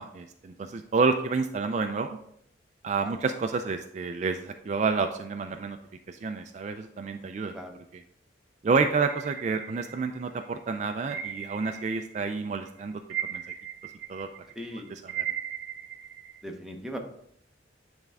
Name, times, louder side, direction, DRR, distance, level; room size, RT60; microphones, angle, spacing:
voice 1, 0.0-2.1 2.8-5.8 6.1-7.5 8.6-13.0 13.3-13.4 14.1-14.3 15.2-15.3, right 4 dB, 40° right, 6 dB, 0.3 m, -29 dB
sound 1, 9.1-10.4 11.1-12.4 12.7-16.4, right 9 dB, 70° right, 0.8 m, -37 dB
voice 2, 14.5-14.9 16.4-17.0, equal, ahead, 1 dB, 0.7 m, -38 dB
8.9 x 3.5 x 3.4 m, 0.70 s
head